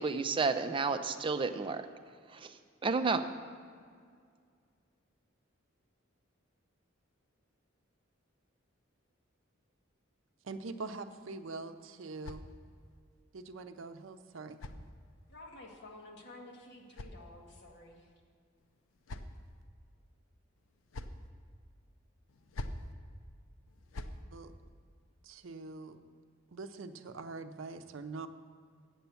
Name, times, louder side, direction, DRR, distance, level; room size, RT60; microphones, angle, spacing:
voice 1, 0.0-1.8 2.3-2.5 2.8-3.2, right 4 dB, 25° right, 8 dB, 0.4 m, -31 dB
voice 2, 10.4-12.5 13.3-14.6 24.3-24.5 25.2-26.0 26.5-28.3, right 3 dB, 75° right, 9 dB, 0.6 m, -43 dB
sound 1, 11.3-13.0 14.0-15.4 16.4-17.8 18.6-19.6 20.6-21.3 22.3-22.9 23.7-24.2, left 1 dB, 90° left, 0.5 m, -47 dB
voice 3, 15.3-18.1, left 2 dB, 60° left, 0 dB, 1.5 m, -51 dB
8.0 x 7.6 x 7.0 m, 2.1 s
head